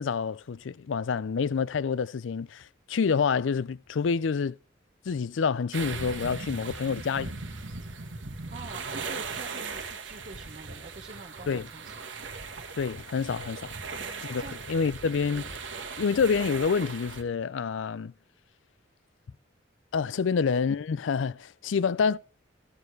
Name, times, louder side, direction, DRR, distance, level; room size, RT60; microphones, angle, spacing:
voice 1, 0.0-4.6 5.1-7.3 11.5-11.6 12.8-13.7 14.2-14.4 14.7-15.5 16.0-18.1 19.9-22.2, left 5 dB, 85° left, 0.4 m, -27 dB
sound 1, 5.7-17.2, right 4 dB, 80° right, 1.4 m, -38 dB
voice 2, 8.5-11.9 13.9-14.6 20.2-20.4, right 3 dB, 45° right, 1.1 m, -46 dB
14.5 x 6.6 x 4.6 m
head